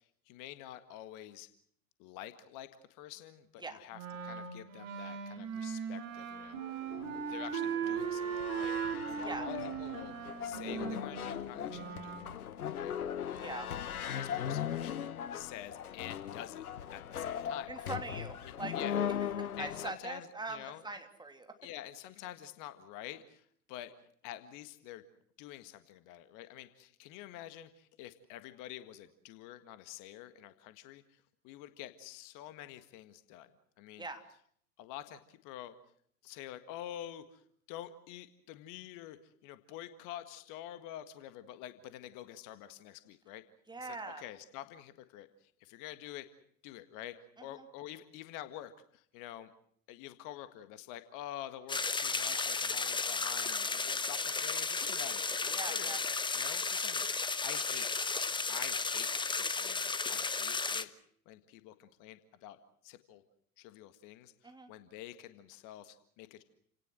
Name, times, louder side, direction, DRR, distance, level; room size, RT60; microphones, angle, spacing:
voice 1, 0.0-1.5 2.0-6.8 7.3-8.8 9.1-12.3 12.7-13.0 13.4-13.6 14.1-16.6 16.9-17.9 18.4-19.0 19.6-20.8 21.6-25.0 25.4-33.5 33.8-34.1 34.8-35.8 36.2-43.4 43.8-46.3 46.6-49.5 49.9-56.0 56.3-57.9 58.5-60.9 61.3-63.2 63.6-66.4, left 12 dB, 45° left, 11 dB, 1.8 m, -48 dB
Wind instrument woodwind instrument, 3.9-12.3, right 7 dB, 65° right, 3.7 m, -38 dB
sound 1, 6.4-19.9, left 9 dB, 75° left, 1.1 m, -39 dB
voice 2, 17.7-18.8 19.6-21.5 34.0-34.2 43.7-44.2 47.4-47.6 55.5-56.2 64.4-64.7, right 3 dB, 10° right, 6 dB, 3.0 m, -42 dB
sound 2, 51.7-60.8, left 4 dB, 10° left, 1.2 m, -34 dB
29.5 x 18.0 x 7.7 m, 0.65 s
figure-of-eight pair, 85°, 44 cm